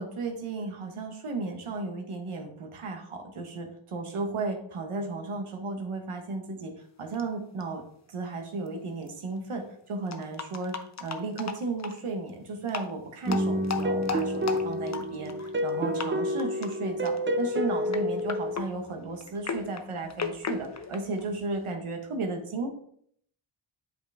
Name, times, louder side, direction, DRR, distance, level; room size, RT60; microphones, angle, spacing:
voice 1, 0.0-6.7 7.0-7.8 8.1-22.7, right 3 dB, 85° right, 4 dB, 1.5 m, -34 dB
sound 1, 7.1-7.2 7.6-7.7 8.7-8.8 9.0-9.1 10.1-12.0 12.6-12.9 13.3-15.7 15.9-16.1 16.4-16.7 17.1-17.4 17.9-21.7, left 5 dB, 35° left, 0.8 m, -36 dB
sound 2, 13.3-18.6, equal, 25° right, 0.7 m, -29 dB
8.0 x 4.9 x 3.5 m, 0.64 s
cardioid pair, 65°, 49 cm